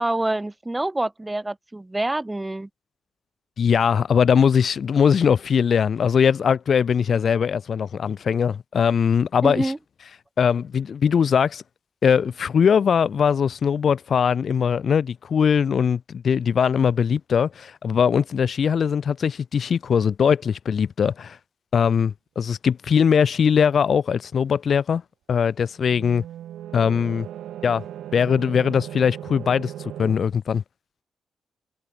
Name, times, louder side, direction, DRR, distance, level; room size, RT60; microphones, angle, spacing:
voice 1, 0.0-2.7 9.4-9.8, right 2 dB, 15° right, 7.9 m, -26 dB
voice 2, 3.6-9.7 10.4-11.6 12.0-21.4 21.7-25.0 25.3-26.2 26.7-27.3 27.6-27.8 28.1-30.6, left 7 dB, 60° left, 1.3 m, -21 dB
sound 1, 25.8-30.2, right 11 dB, 85° right, 5.1 m, -37 dB
cardioid pair, 65°, 0 cm